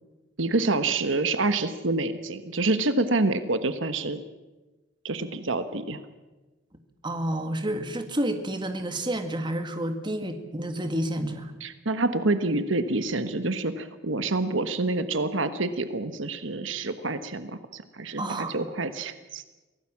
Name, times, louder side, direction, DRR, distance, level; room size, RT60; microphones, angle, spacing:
voice 1, 0.4-4.2 5.0-6.0 11.6-19.5, right 2 dB, 75° right, 11 dB, 1.3 m, -27 dB
voice 2, 7.0-11.5 18.2-18.6, right 1 dB, 25° right, 7 dB, 1.9 m, -30 dB
24.5 x 17.5 x 7.4 m, 1.2 s
head